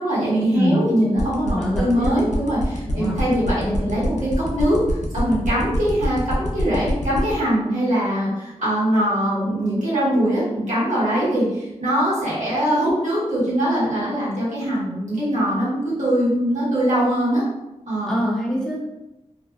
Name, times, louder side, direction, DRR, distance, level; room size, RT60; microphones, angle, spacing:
voice 1, 0.0-4.8 5.1-17.4 17.9-18.1, equal, 80° right, -9 dB, 1.2 m, -22 dB
voice 2, 0.5-0.9 1.4-2.3 2.9-3.2 18.1-18.9, equal, 5° left, -7 dB, 0.9 m, -24 dB
sound 1, 1.2-7.3, left 2 dB, 75° left, 0.5 m, -28 dB
2.5 x 2.1 x 2.3 m, 0.95 s
cardioid pair, 40°, 12 cm